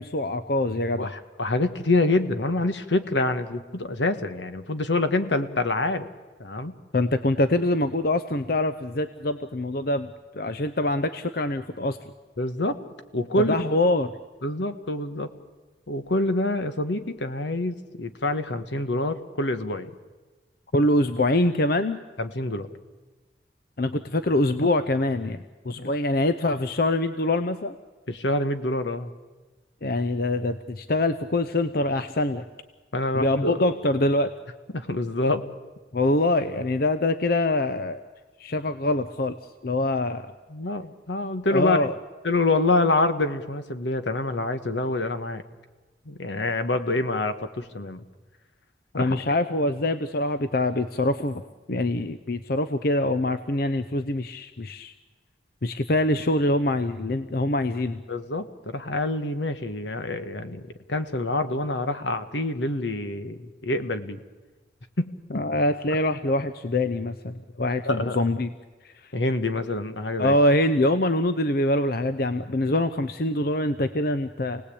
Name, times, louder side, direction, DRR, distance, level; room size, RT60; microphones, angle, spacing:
voice 1, 0.0-1.1 6.9-12.0 13.4-14.1 20.7-22.0 23.8-27.8 29.8-32.4 33.1-34.3 35.9-38.0 38.4-39.4 39.6-40.3 41.5-41.9 48.9-51.4 51.7-54.9 55.6-58.0 65.3-68.5 68.8-69.1 70.2-74.6, left 1 dB, 55° left, 10 dB, 0.8 m, -24 dB
voice 2, 1.0-6.1 6.4-6.7 12.4-12.8 13.1-13.5 14.4-15.3 15.9-19.9 22.2-22.7 25.8-25.9 28.1-29.1 32.9-33.7 34.7-35.4 40.5-41.8 42.2-45.4 46.0-48.0 48.9-49.2 58.1-64.2 65.0-65.4 67.8-68.2 69.1-70.4, left 2 dB, 75° left, 10 dB, 1.4 m, -26 dB
28.5 x 18.5 x 8.6 m, 1.3 s
head